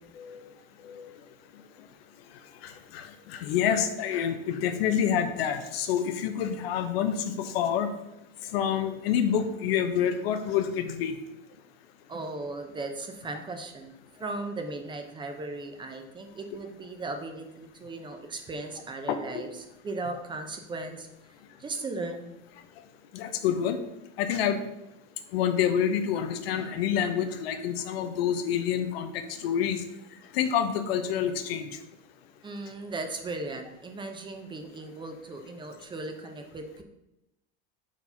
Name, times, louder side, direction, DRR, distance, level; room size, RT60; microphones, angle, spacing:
voice 1, 2.6-7.9 8.5-11.1 19.1-19.2 23.1-23.8 24.2-24.6 25.3-29.8 30.3-31.7, left 8 dB, 85° left, 8 dB, 0.8 m, -27 dB
voice 2, 12.1-13.9 14.2-21.1 21.6-22.3 32.4-36.8, right 2 dB, 15° right, 5 dB, 0.6 m, -37 dB
4.7 x 4.0 x 5.7 m, 0.91 s
supercardioid pair, 140°, 29 cm